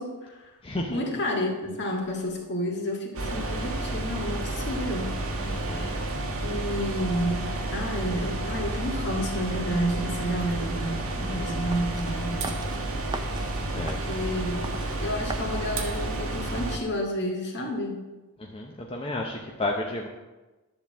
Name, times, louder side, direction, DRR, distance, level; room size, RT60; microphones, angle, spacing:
voice 1, 0.0-0.6 0.9-5.2 6.4-12.5 13.8-14.7 15.0-18.0, equal, 55° left, 0 dB, 1.8 m, -30 dB
voice 2, 0.6-1.2 5.4-5.9 13.7-14.1 18.4-20.1, left 2 dB, 25° left, 0 dB, 0.7 m, -32 dB
sound 1, 3.1-16.8, right 2 dB, 70° right, 1.2 m, -31 dB
sound 2, 11.7-16.7, right 3 dB, 20° right, 0.5 m, -41 dB
11.0 x 3.9 x 7.3 m, 1.1 s
head